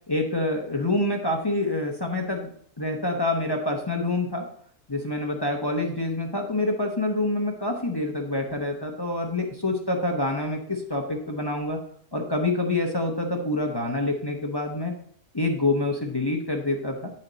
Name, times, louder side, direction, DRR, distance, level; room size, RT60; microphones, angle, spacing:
voice 1, 0.1-2.5 2.8-4.5 4.9-11.8 12.1-14.9 15.3-17.1, left 2 dB, 25° left, 1 dB, 0.5 m, -26 dB
8.8 x 4.3 x 3.9 m, 0.62 s
omnidirectional pair, 1.6 m